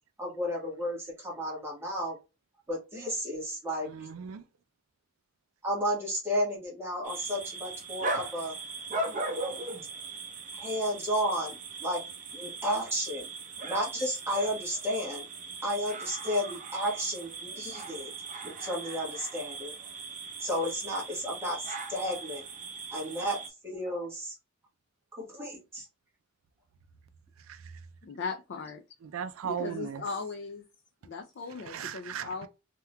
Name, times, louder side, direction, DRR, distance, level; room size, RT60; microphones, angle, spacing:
voice 1, 0.2-2.2 2.7-3.9 5.6-8.5 10.5-12.0 12.3-13.3 13.6-15.2 15.6-18.1 18.6-19.7 20.4-22.4 22.9-24.4 25.2-25.8, equal, 15° right, 1.4 m, -32 dB
voice 2, 3.8-4.4 27.5-27.7 29.0-30.0 31.5-32.5, right 8 dB, 85° right, 0.4 m, -37 dB
sound 1, 7.0-23.5, right 3 dB, 40° right, 0.7 m, -39 dB
voice 3, 28.0-28.8 29.4-30.6 31.0-32.5, left 4 dB, 60° left, 0.4 m, -38 dB
3.5 x 2.8 x 2.2 m
head